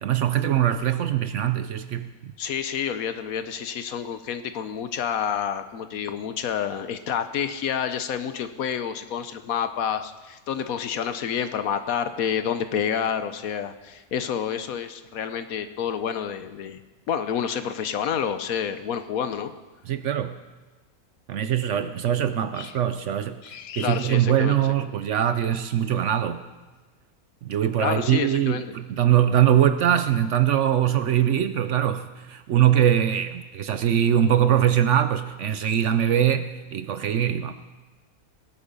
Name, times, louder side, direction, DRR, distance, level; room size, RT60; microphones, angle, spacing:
voice 1, 0.0-2.3 19.9-20.4 21.3-23.3 23.8-26.4 27.4-37.5, right 10 dB, 65° right, 10 dB, 0.8 m, -22 dB
voice 2, 2.4-16.8 17.1-19.5 22.6-22.7 23.4-24.7 27.8-28.8, left 8 dB, 70° left, 10 dB, 1.2 m, -29 dB
19.0 x 8.5 x 5.3 m, 1.2 s
omnidirectional pair, 1.6 m